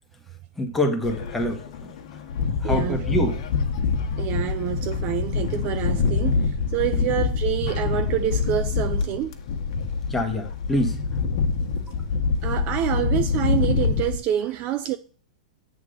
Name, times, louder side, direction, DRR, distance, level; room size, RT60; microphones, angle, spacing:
voice 1, 0.6-1.9 2.6-3.4 4.0-4.1 7.0-7.1 10.1-11.0, left 1 dB, 5° left, 1.4 m, -26 dB
sound 1, 1.0-14.2, left 5 dB, 55° left, 1.2 m, -25 dB
voice 2, 2.6-3.0 4.2-9.3 12.4-15.0, right 11 dB, 35° right, 0.4 m, -27 dB
8.2 x 3.7 x 6.5 m
hypercardioid pair, 140°, 4 cm